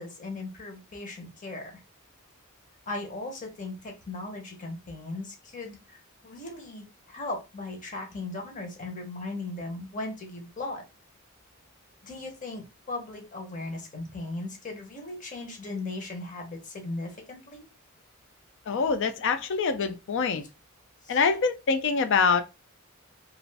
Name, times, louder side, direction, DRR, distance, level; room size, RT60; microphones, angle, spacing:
voice 1, 0.0-1.8 2.9-10.8 12.0-17.7 21.0-21.2, left 2 dB, 35° left, 0.8 m, -38 dB
voice 2, 18.7-20.4 21.1-22.4, left 5 dB, 60° left, 0.4 m, -25 dB
2.4 x 2.4 x 3.2 m
head